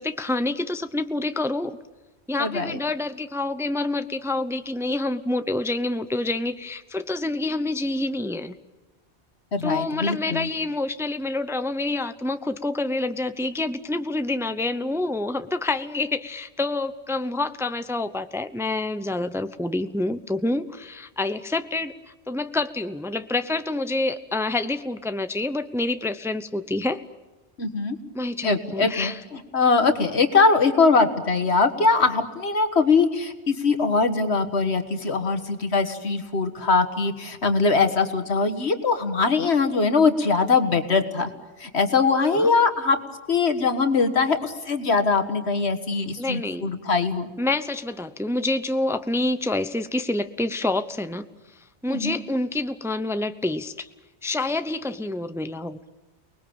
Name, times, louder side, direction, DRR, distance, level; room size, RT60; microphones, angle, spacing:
voice 1, 0.0-1.8 2.3-8.5 9.6-21.9 22.3-27.0 28.1-29.2 42.2-42.6 46.2-46.7 47.4-51.2 51.8-53.9 54.2-55.8, left 2 dB, 5° right, 11 dB, 0.7 m, -27 dB
voice 2, 2.4-2.8 9.5-10.5 27.6-28.0 28.4-41.3 41.6-43.0 43.3-47.3 51.9-52.2, left 4 dB, 75° left, 8 dB, 2.0 m, -22 dB
29.5 x 20.5 x 8.8 m, 1.2 s
omnidirectional pair, 1.1 m